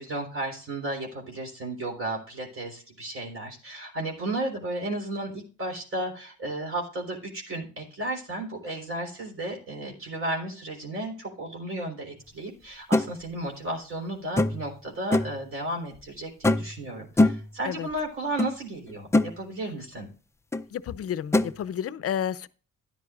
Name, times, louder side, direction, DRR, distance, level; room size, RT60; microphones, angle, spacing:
voice 1, 0.0-20.1, right 1 dB, 45° right, 3.8 m, -34 dB
sound 1, 12.9-13.1 14.4-14.7 15.1-15.4 16.4-16.8 17.2-17.5 18.4-18.5 18.9-19.3 20.5-20.6 21.3-21.5, left 2 dB, 10° left, 0.5 m, -22 dB
voice 2, 20.7-22.5, left 9 dB, 50° left, 0.6 m, -31 dB
13.0 x 10.5 x 2.4 m
cardioid pair, 90°, 30 cm